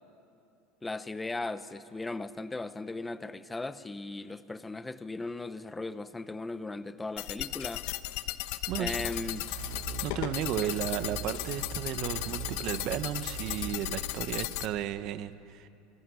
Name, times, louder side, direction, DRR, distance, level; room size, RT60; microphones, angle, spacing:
voice 1, 0.8-7.9 8.8-9.5 10.5-10.7, left 2 dB, 10° left, 0.8 m, -37 dB
sound 1, 7.2-14.7, left 16 dB, 65° left, 1.0 m, -36 dB
voice 2, 8.7-9.1 10.0-15.7, right 11 dB, 50° right, 1.0 m, -34 dB
sound 2, 8.7-13.7, right 6 dB, 75° right, 4.1 m, -42 dB
27.0 x 24.5 x 8.3 m
supercardioid pair, 145°, 0 cm